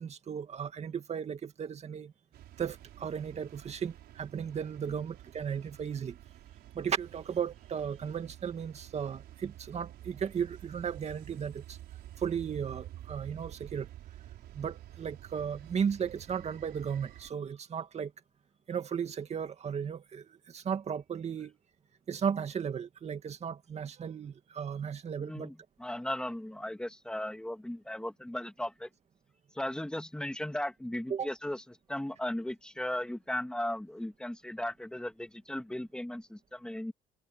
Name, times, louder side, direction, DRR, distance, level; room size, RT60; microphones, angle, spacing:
voice 1, 0.0-2.1 2.6-6.2 6.7-11.8 12.2-13.9 14.5-18.1 18.7-21.6 22.1-25.5 31.1-31.3, right 7 dB, 40° right, 2.2 m, -35 dB
sound 1, 2.3-17.3, right 13 dB, 70° right, 5.3 m, -50 dB
voice 2, 25.2-28.9 29.5-36.9, left 1 dB, 5° left, 2.8 m, -37 dB
cardioid pair, 110°, 17 cm